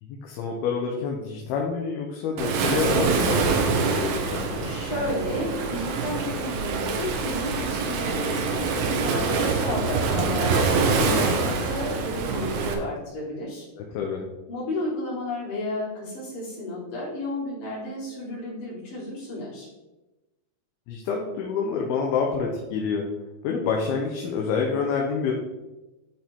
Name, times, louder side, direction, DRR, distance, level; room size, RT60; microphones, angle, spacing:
voice 1, 0.0-4.7 10.7-11.3 13.8-14.2 20.9-23.0 23.4-25.3, left 5 dB, 80° left, 0 dB, 2.7 m, -28 dB
Waves surf, 2.4-12.7, right 4 dB, 80° right, 2.7 m, -25 dB
voice 2, 4.6-13.7 14.5-19.7, left 2 dB, 65° left, -8 dB, 4.6 m, -32 dB
11.5 x 4.5 x 3.6 m, 1.1 s
omnidirectional pair, 4.4 m